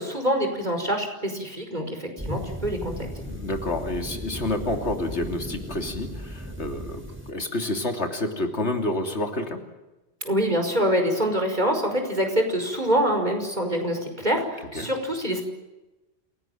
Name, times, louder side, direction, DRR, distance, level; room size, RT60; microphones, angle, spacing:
voice 1, 0.0-3.1 10.2-15.4, equal, 40° right, 5 dB, 5.5 m, -25 dB
sound 1, 2.2-7.3, equal, 10° right, 3.6 m, -36 dB
voice 2, 3.2-9.6 14.7-14.9, left 2 dB, 80° left, 5 dB, 3.4 m, -29 dB
28.0 x 18.0 x 9.3 m, 1.0 s
omnidirectional pair, 1.1 m